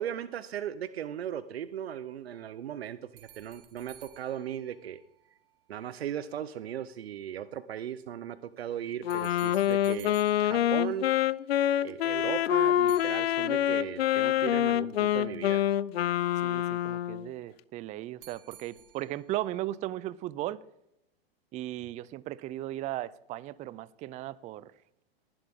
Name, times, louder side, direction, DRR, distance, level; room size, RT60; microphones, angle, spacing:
voice 1, 0.0-5.0 5.7-11.1 11.8-15.6, right 10 dB, 85° right, 0.8 m, -37 dB
sound 1, 3.2-5.6 9.1-11.6 12.9-14.1 18.2-19.4, right 11 dB, 60° right, 2.3 m, -55 dB
Wind instrument woodwind instrument, 9.0-17.3, left 12 dB, 80° left, 0.6 m, -26 dB
voice 2, 16.4-20.6 21.5-24.7, right 15 dB, 25° right, 0.5 m, -36 dB
19.5 x 11.0 x 3.6 m
hypercardioid pair, 125°, 30 cm